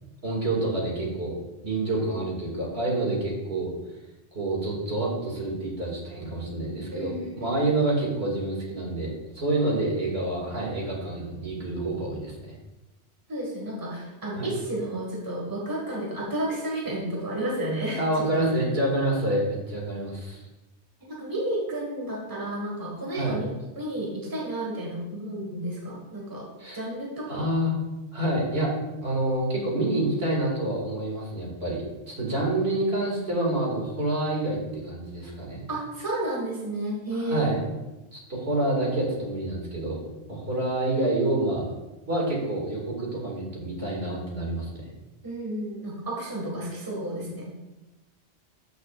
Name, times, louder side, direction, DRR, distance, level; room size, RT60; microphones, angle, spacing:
voice 1, 0.2-1.4 1.6-3.7 4.3-12.3 14.4-14.5 18.0-20.4 23.1-23.4 26.6-26.8 27.3-27.8 28.1-35.6 37.1-37.6 38.1-40.0 40.3-41.7 42.1-44.8, right 2 dB, 65° right, -3 dB, 2.4 m, -27 dB
voice 2, 1.9-2.3 6.9-7.7 13.3-18.0 18.3-18.5 21.0-26.4 26.7-27.4 32.3-32.7 35.7-37.5 45.2-47.6, right 1 dB, 20° right, -3 dB, 1.6 m, -32 dB
13.0 x 6.1 x 2.4 m, 1.0 s
omnidirectional pair, 1.1 m